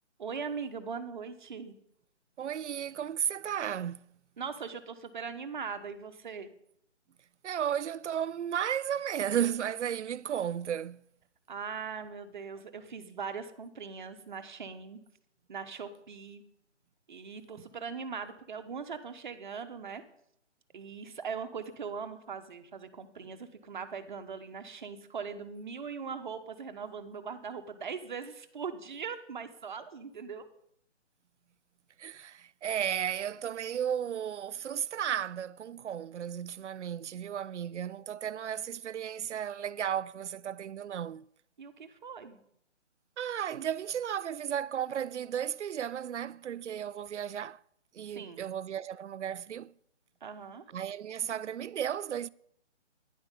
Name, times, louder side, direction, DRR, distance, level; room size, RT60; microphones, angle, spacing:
voice 1, 0.2-1.7 4.4-6.5 11.5-15.0 15.5-16.4 17.1-20.0 20.7-30.5 41.6-42.4 48.1-48.4 50.2-50.6, right 6 dB, 40° right, 1.1 m, -40 dB
voice 2, 2.4-4.0 7.4-11.0 17.6-17.7 32.0-41.3 43.2-47.6 47.9-49.7 50.7-52.3, right 9 dB, 75° right, 0.5 m, -34 dB
11.5 x 10.5 x 5.3 m
hypercardioid pair, 165°, 36 cm